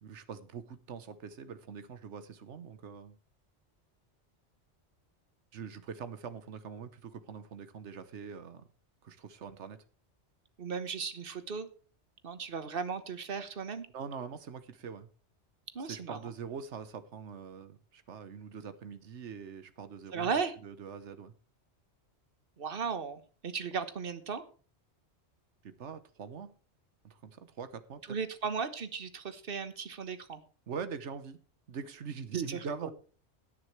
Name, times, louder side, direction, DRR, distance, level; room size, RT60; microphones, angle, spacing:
voice 1, 0.0-3.1 5.5-8.6 9.0-9.8 13.9-15.1 15.8-21.3 25.6-26.5 27.0-28.2 30.7-31.4 31.7-32.9, right 6 dB, 85° right, 1.3 m, -43 dB
voice 2, 10.6-11.7 12.2-13.9 15.7-16.2 20.1-20.5 22.6-24.4 28.1-30.4 32.5-32.9, right 5 dB, 55° right, 1.4 m, -36 dB
17.5 x 9.6 x 3.2 m
omnidirectional pair, 1.2 m